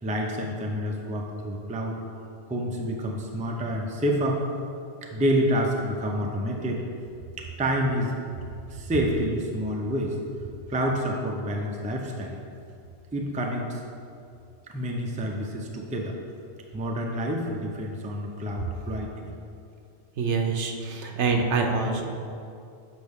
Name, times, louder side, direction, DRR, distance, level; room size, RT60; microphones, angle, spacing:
voice 1, 0.0-2.0 2.5-4.4 5.0-6.8 7.4-8.2 8.7-10.2 10.7-12.4 13.1-13.8 14.7-16.2 16.7-19.3, equal, 10° right, 0 dB, 0.4 m, -28 dB
voice 2, 20.2-22.0, right 4 dB, 80° right, 3 dB, 1.1 m, -25 dB
8.2 x 5.3 x 3.6 m, 2.5 s
omnidirectional pair, 1.2 m